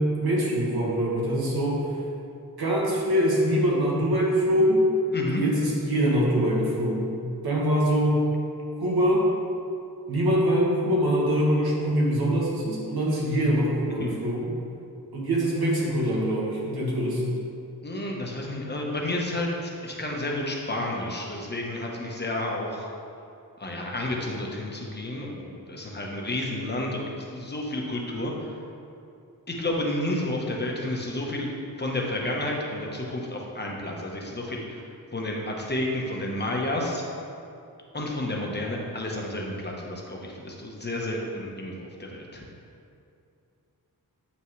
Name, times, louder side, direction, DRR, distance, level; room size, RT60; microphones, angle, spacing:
voice 1, 0.0-2.0 2.6-4.8 5.3-8.2 8.8-9.3 10.1-14.5 15.1-17.4, equal, 85° right, -5 dB, 1.8 m, -24 dB
voice 2, 17.8-22.9 23.6-28.5 29.5-31.5 31.8-34.8 35.1-37.0 37.9-42.4, left 1 dB, 30° left, -1 dB, 1.0 m, -31 dB
8.5 x 5.8 x 3.2 m, 2.6 s
wide cardioid pair, 130°, 37 cm